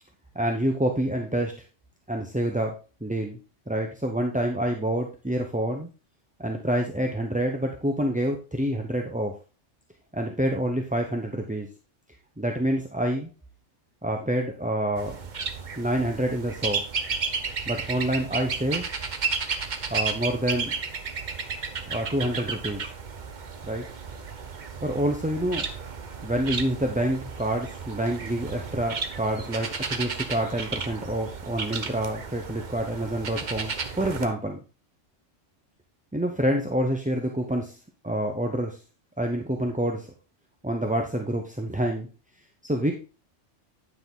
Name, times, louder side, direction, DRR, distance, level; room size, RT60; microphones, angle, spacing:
voice 1, 0.3-1.5 2.1-2.7 3.0-3.4 3.7-5.9 6.4-9.3 10.1-11.7 12.4-13.3 14.0-15.2 15.8-16.8 17.7-18.8 19.9-20.7 21.9-22.8 23.6-23.8 24.8-25.6 26.2-34.6 36.1-37.8 38.0-38.8 39.2-40.1 40.6-42.1 42.6-42.9, right 1 dB, 10° right, 2 dB, 0.7 m, -27 dB
sound 1, 15.0-34.3, right 5 dB, 40° right, 0.9 m, -33 dB
9.7 x 6.0 x 3.7 m, 0.32 s
omnidirectional pair, 1.3 m